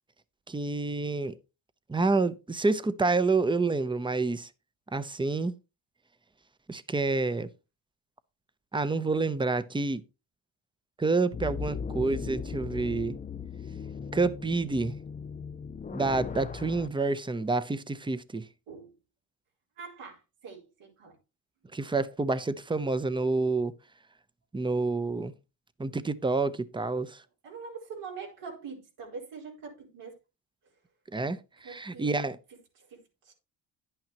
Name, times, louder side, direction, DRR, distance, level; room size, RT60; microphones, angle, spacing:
voice 1, 0.5-1.3 1.9-4.5 4.9-5.5 6.7-7.5 8.7-10.0 11.0-13.2 14.1-14.9 15.9-18.4 21.7-23.7 24.5-25.3 25.8-27.2 31.1-32.4, right 3 dB, 10° right, 0.7 m, -28 dB
sound 1, 11.3-16.9, left 6 dB, 20° left, 0.4 m, -38 dB
voice 2, 18.7-19.0 19.8-21.2 25.0-25.1 27.4-30.2 31.6-32.1 32.8-33.3, right 5 dB, 80° right, 4.6 m, -44 dB
10.5 x 8.9 x 3.0 m
cardioid pair, 85°, 50 cm